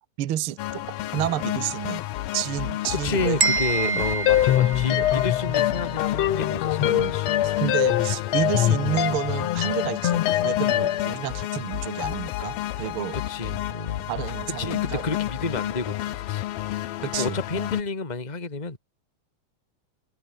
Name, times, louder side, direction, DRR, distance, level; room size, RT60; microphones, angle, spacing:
voice 1, 0.2-0.9 1.1-2.0 2.3-3.4 3.8-4.0 4.9-5.1 6.9-7.2 7.4-13.2 14.1-15.0 17.0-17.4, right 12 dB, 85° right, 1.2 m, -30 dB
sound 1, 0.6-17.8, left 14 dB, 80° left, 3.0 m, -31 dB
voice 2, 2.9-7.4 13.1-14.1 14.6-18.8, left 3 dB, 10° left, 2.6 m, -31 dB
sound 2, 3.4-5.4, right 4 dB, 25° right, 1.7 m, -27 dB
sound 3, 4.3-11.1, left 13 dB, 65° left, 1.7 m, -23 dB
omnidirectional pair, 4.2 m